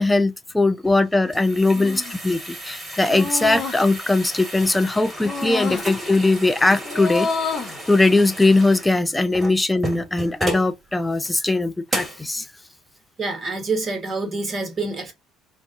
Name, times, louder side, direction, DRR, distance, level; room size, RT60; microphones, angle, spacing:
voice 1, 0.0-7.3 7.9-12.5, left 2 dB, 10° left, 0.5 m, -20 dB
sound 1, 0.9-10.7 11.2-11.3 11.9-12.3, right 1 dB, 20° right, 1.5 m, -33 dB
sound 2, 1.7-2.2 3.1-3.8 5.2-5.9 6.8-7.8, left 4 dB, 45° left, 0.8 m, -28 dB
voice 2, 13.2-15.1, right 3 dB, 35° right, 1.2 m, -27 dB
3.8 x 2.3 x 2.6 m
figure-of-eight pair, 55°, 0 cm